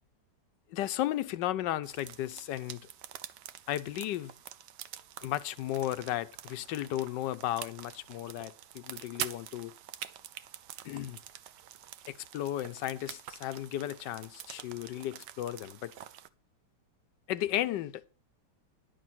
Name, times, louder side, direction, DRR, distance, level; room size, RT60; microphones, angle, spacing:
voice 1, 0.7-2.9 3.7-4.3 5.2-9.7 10.8-11.2 12.1-15.9 17.3-18.0, left 13 dB, 85° left, 1.3 m, -34 dB
sound 1, 1.8-16.3, right 11 dB, 80° right, 1.4 m, -46 dB
11.0 x 6.4 x 6.1 m
omnidirectional pair, 1.9 m